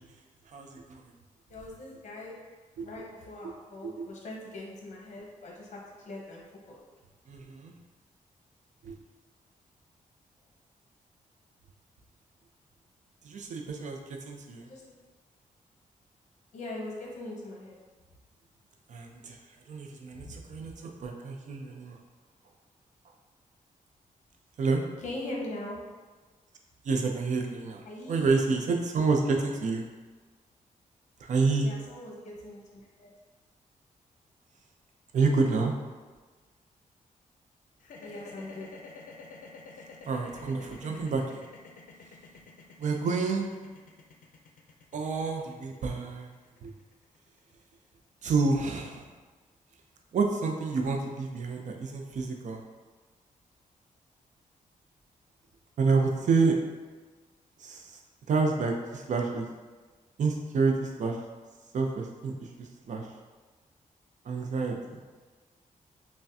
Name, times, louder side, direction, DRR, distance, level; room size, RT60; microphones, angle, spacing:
voice 1, 0.5-1.1 2.8-2.9 3.8-4.1 7.3-7.7 8.8-8.9 13.2-14.7 18.9-19.4 19.7-22.0 24.6-24.8 26.8-29.9 31.2-31.7 35.1-35.7 40.1-41.4 42.8-43.5 44.9-46.3 46.6-46.7 48.2-49.1 50.1-52.6 55.8-56.5 57.6-58.0 58.3-59.5 60.2-61.2 61.7-63.1 64.2-65.0, right 4 dB, 60° right, 2 dB, 0.5 m, -29 dB
voice 2, 1.5-2.4 2.8-6.8 14.7-15.0 16.5-17.7 20.1-20.7 25.0-25.8 27.9-28.3 31.6-33.1 38.0-38.7, left 1 dB, 55° left, -3 dB, 1.0 m, -41 dB
sound 1, 37.8-48.0, left 4 dB, 75° left, 0.5 m, -49 dB
5.6 x 2.2 x 2.7 m, 1.4 s
wide cardioid pair, 140°, 14 cm